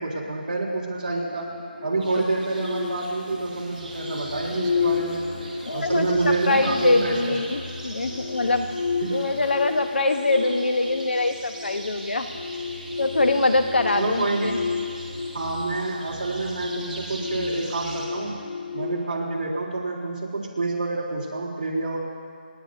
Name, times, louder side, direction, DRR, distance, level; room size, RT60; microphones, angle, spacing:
voice 1, 0.0-1.5 1.8-5.3 5.7-7.4 9.0-9.2 13.9-14.6 15.3-18.4 18.7-22.0, right 3 dB, 45° right, -5 dB, 3.8 m, -28 dB
sound 1, 1.1-20.0, left 5 dB, 65° left, 2.1 m, -32 dB
sound 2, 2.0-18.1, right 1 dB, 5° right, 1.6 m, -41 dB
voice 2, 5.7-8.7 9.1-12.3 13.0-14.5, left 2 dB, 85° left, 6 dB, 1.2 m, -23 dB
29.0 x 10.5 x 2.8 m, 2.2 s
figure-of-eight pair, 175°, 6 cm